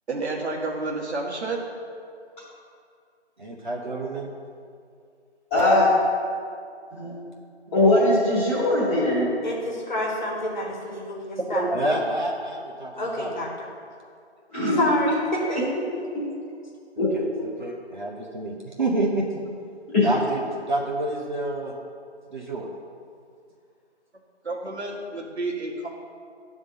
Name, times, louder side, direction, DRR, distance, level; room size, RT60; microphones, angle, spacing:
voice 1, 0.1-1.6 11.5-11.8 24.4-25.9, right 2 dB, 70° right, -1 dB, 1.6 m, -29 dB
voice 2, 3.4-4.3 7.7-8.0 11.7-13.3 17.0-19.3 20.0-20.4 20.7-21.7 22.3-22.7, right 2 dB, 45° right, -2 dB, 0.9 m, -28 dB
voice 3, 5.5-5.9 6.9-7.1 7.7-9.3 14.5-14.9 16.1-16.2 17.0-17.1 19.9-20.1, left 2 dB, 10° left, -11 dB, 1.9 m, -20 dB
voice 4, 9.4-12.0 13.0-13.7 14.8-15.6, left 1 dB, 40° left, -2 dB, 1.4 m, -29 dB
9.3 x 3.6 x 6.6 m, 2.3 s
figure-of-eight pair, 165°, 34 cm